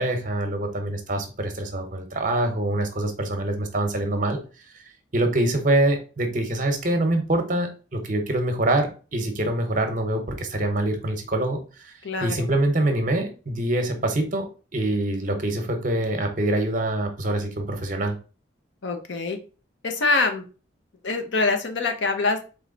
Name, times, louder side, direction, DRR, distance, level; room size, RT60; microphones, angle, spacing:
voice 1, 0.0-4.4 5.1-11.9 12.2-14.5 14.7-18.2, right 1 dB, 40° right, 6 dB, 0.9 m, -25 dB
voice 2, 12.0-12.5 18.8-19.4 19.8-20.4 21.0-22.5, left 3 dB, 70° left, 5 dB, 0.8 m, -24 dB
4.0 x 3.3 x 3.8 m, 0.35 s
head